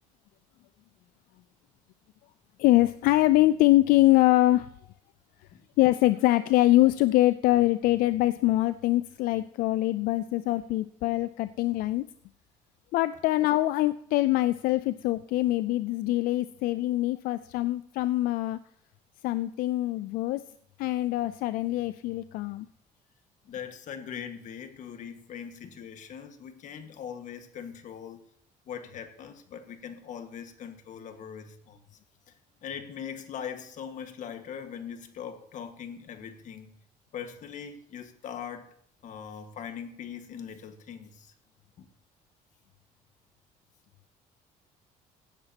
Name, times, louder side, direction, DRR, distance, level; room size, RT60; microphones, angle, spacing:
voice 1, 2.6-4.7 5.8-12.0 12.9-18.6 19.2-20.4 20.8-22.7, left 16 dB, 90° left, 13 dB, 0.4 m, -24 dB
voice 2, 23.4-28.2 28.7-31.8 32.6-36.7 37.1-38.7 39.0-41.3 41.8-41.9, left 8 dB, 60° left, 7 dB, 1.6 m, -41 dB
17.0 x 9.9 x 2.9 m, 0.66 s
cardioid pair, 120°, 14 cm